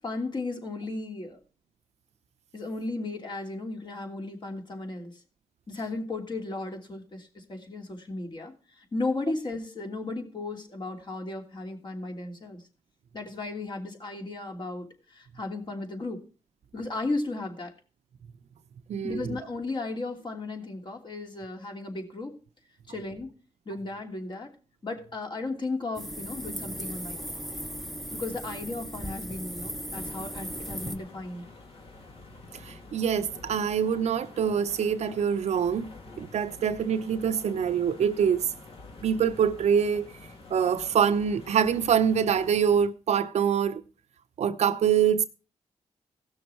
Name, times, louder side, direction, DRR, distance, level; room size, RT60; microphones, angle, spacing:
voice 1, 0.0-1.4 2.5-5.2 5.7-12.6 13.1-16.2 16.7-17.7 19.0-22.3 22.9-23.3 23.6-24.5 24.8-27.3 28.1-31.4, left 2 dB, 45° left, 3.0 m, -35 dB
voice 2, 18.9-19.2 32.6-35.9 36.2-38.4 39.0-40.1 40.5-43.8 44.4-45.2, right 7 dB, 75° right, 0.7 m, -25 dB
sound 1, 26.0-31.0, equal, ahead, 1.0 m, -37 dB
sound 2, 29.9-42.9, left 3 dB, 60° left, 2.8 m, -48 dB
17.0 x 6.4 x 4.4 m
cardioid pair, 70°, 11 cm